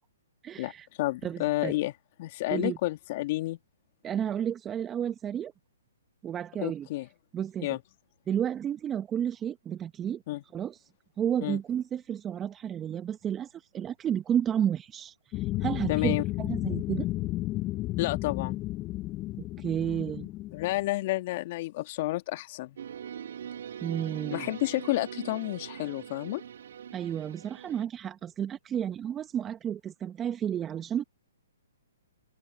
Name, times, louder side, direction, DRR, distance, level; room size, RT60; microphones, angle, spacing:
voice 1, 0.4-0.9 1.2-1.7 2.5-2.8 4.0-5.5 6.2-6.9 7.3-7.7 8.3-10.2 10.5-10.8 11.2-17.1 19.4-20.3 23.8-24.5 26.9-31.0, right 9 dB, 20° right, 1.1 m, -32 dB
voice 2, 1.0-1.9 2.2-3.6 6.6-7.1 7.6-7.8 10.3-10.4 11.4-11.6 15.9-16.2 18.0-18.6 20.5-22.8 24.3-26.4, left 18 dB, 45° left, 2.1 m, -30 dB
sound 1, 15.3-20.9, left 17 dB, 25° left, 0.8 m, -32 dB
sound 2, 22.8-27.9, right 9 dB, 65° right, 2.7 m, -42 dB
hypercardioid pair, 130°, 0 cm